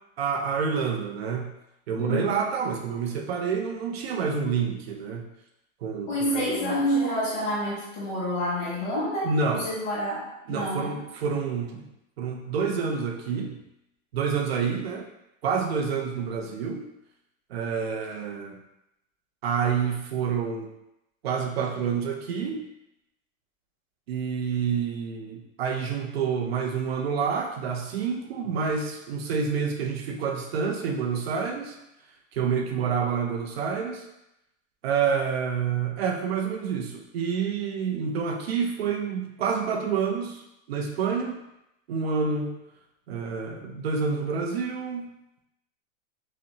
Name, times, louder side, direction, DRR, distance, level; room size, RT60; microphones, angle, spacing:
voice 1, 0.2-1.5 1.9-5.3 5.8-6.7 9.2-9.6 10.5-11.8 12.2-13.6 14.1-15.0 15.4-16.9 17.5-18.6 19.4-20.7 21.2-22.6 24.1-31.8 32.3-34.0 34.8-40.4 40.7-41.4 41.9-42.5 43.1-45.1, right 6 dB, 50° right, 3 dB, 0.5 m, -28 dB
voice 2, 2.0-2.4 6.1-11.0, equal, 15° left, -7 dB, 0.5 m, -28 dB
5.5 x 2.1 x 2.7 m, 0.87 s
supercardioid pair, 165°, 41 cm